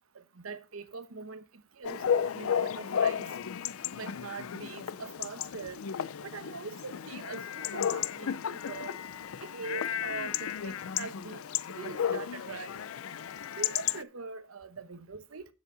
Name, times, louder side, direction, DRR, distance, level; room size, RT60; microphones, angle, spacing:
voice 1, 0.4-1.4 1.8-2.0 2.3-3.3 3.9-5.8 6.2-8.3 8.7-9.0 9.4-11.4 11.8-12.7 13.6-15.4, right 4 dB, 85° right, 1.0 m, -42 dB
Chatter / Bark / Livestock farm animals working animals, 1.8-14.0, left 8 dB, 85° left, 0.5 m, -33 dB
9.4 x 7.5 x 3.8 m
head